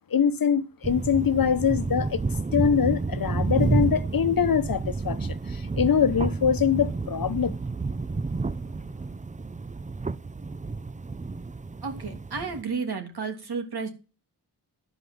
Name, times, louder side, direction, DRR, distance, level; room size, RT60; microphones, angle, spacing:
voice 1, 0.1-2.2 2.5-7.5, left 7 dB, 55° left, 1.0 m, -24 dB
sound 1, 0.8-12.6, right 3 dB, 20° right, 0.6 m, -30 dB
voice 2, 11.8-13.9, right 5 dB, 70° right, 3.0 m, -32 dB
11.5 x 5.1 x 7.8 m
cardioid pair, 55°, 41 cm